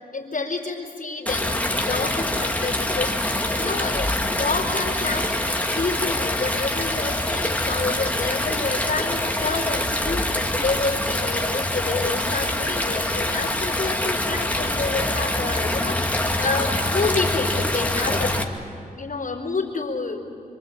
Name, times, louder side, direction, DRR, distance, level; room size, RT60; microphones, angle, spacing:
voice 1, 0.1-5.4 5.7-18.4 18.9-20.4, left 3 dB, 65° left, -3 dB, 3.8 m, -29 dB
Stream, 1.3-18.4, left 1 dB, 10° left, 2.2 m, -25 dB
26.0 x 25.0 x 8.7 m, 2.7 s
wide cardioid pair, 85°, 15 cm